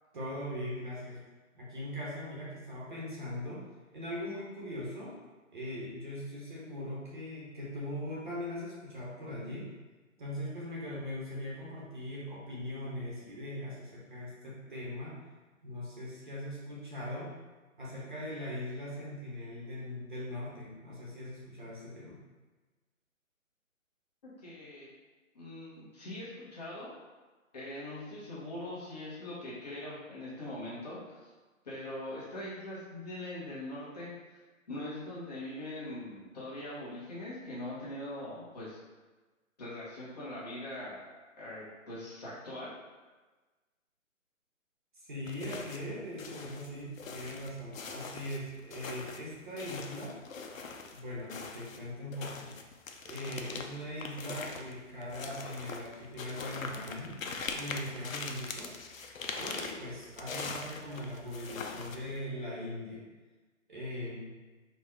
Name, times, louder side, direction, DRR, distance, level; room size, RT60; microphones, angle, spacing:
voice 1, 0.1-1.2 1.5-3.7 3.9-5.1 5.5-9.7 10.2-15.2 15.6-17.3 17.8-22.2 45.0-50.2 50.9-52.5 53.0-57.2 57.5-58.7 59.3-63.0 63.7-64.3, left 1 dB, 35° right, -6 dB, 1.1 m, -40 dB
voice 2, 24.2-24.9 25.3-26.9 27.5-31.2 31.6-34.4 34.7-38.8 39.6-41.0 41.4-42.7, left 1 dB, 30° left, -9 dB, 1.2 m, -42 dB
sound 1, 45.3-45.9 46.2-51.0 51.3-62.2, left 4 dB, 70° left, 0.7 m, -42 dB
4.4 x 2.4 x 4.4 m, 1.2 s
hypercardioid pair, 170°, 41 cm